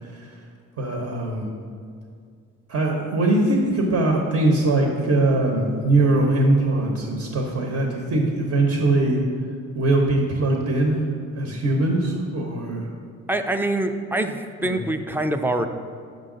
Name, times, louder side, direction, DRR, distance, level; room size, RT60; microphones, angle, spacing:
voice 1, 0.0-0.3 0.8-1.5 2.7-9.2 9.7-12.9 14.6-14.9, right 2 dB, 55° right, 1 dB, 0.9 m, -21 dB
voice 2, 13.3-14.4 14.6-15.7, right 1 dB, 5° right, 7 dB, 0.3 m, -24 dB
6.3 x 5.4 x 3.8 m, 2.2 s
cardioid pair, 90°, 30 cm